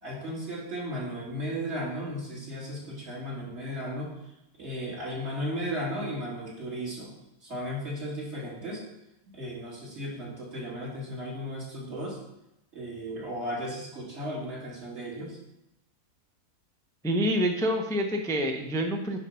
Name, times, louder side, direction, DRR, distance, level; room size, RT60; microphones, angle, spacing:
voice 1, 0.0-4.1 4.6-7.1 7.4-8.8 9.3-12.2 12.7-15.4, equal, 45° right, -5 dB, 2.8 m, -35 dB
voice 2, 17.0-19.2, equal, 5° left, 3 dB, 0.4 m, -27 dB
9.7 x 4.2 x 5.6 m, 0.87 s
omnidirectional pair, 1.6 m